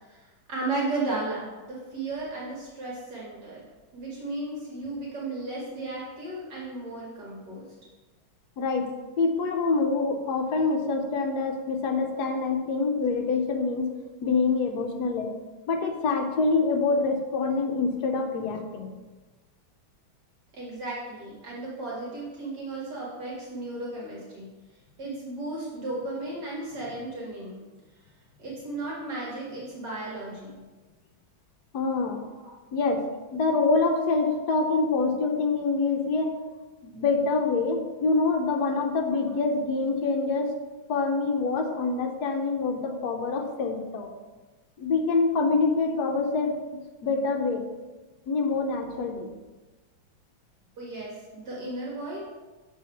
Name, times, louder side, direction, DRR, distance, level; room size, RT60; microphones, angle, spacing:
voice 1, 0.1-3.6 3.9-7.7 20.5-24.5 25.0-27.6 28.4-30.6 32.3-32.5 50.8-52.2, right 2 dB, 55° right, -5 dB, 2.2 m, -35 dB
voice 2, 8.6-8.9 9.2-13.9 14.2-15.3 15.7-18.9 31.7-32.2 32.7-33.0 33.3-36.3 36.8-40.5 40.9-44.1 44.8-47.6 48.3-49.3, left 3 dB, 60° left, 3 dB, 1.2 m, -26 dB
6.6 x 4.1 x 5.8 m, 1.2 s
omnidirectional pair, 2.2 m